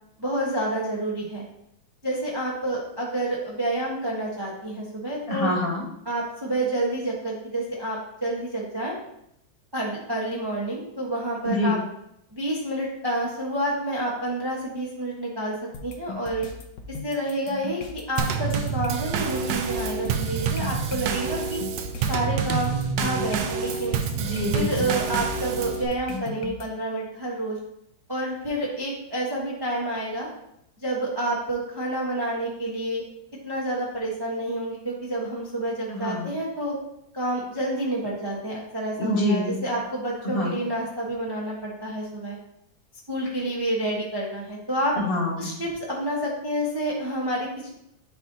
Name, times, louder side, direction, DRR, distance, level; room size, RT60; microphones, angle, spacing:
voice 1, 0.2-1.4 2.0-5.5 6.0-8.9 9.7-11.8 12.3-15.5 15.8-16.5 16.9-21.6 22.1-22.7 23.0-23.9 24.5-27.6 28.1-30.3 30.8-33.0 33.4-36.8 37.1-42.4 43.1-45.0 45.4-47.7, right 1 dB, 20° right, -4 dB, 0.8 m, -29 dB
voice 2, 5.3-5.8 11.4-11.8 24.1-24.9 35.9-36.3 39.0-39.6 40.2-40.5 44.9-45.5, left 1 dB, 30° left, -2 dB, 1.5 m, -26 dB
sound 1, 15.7-26.6, left 5 dB, 65° left, 1.3 m, -39 dB
Drum kit / Snare drum / Bass drum, 18.2-25.9, right 6 dB, 75° right, 1.3 m, -27 dB
9.2 x 4.3 x 2.7 m, 0.79 s
omnidirectional pair, 2.1 m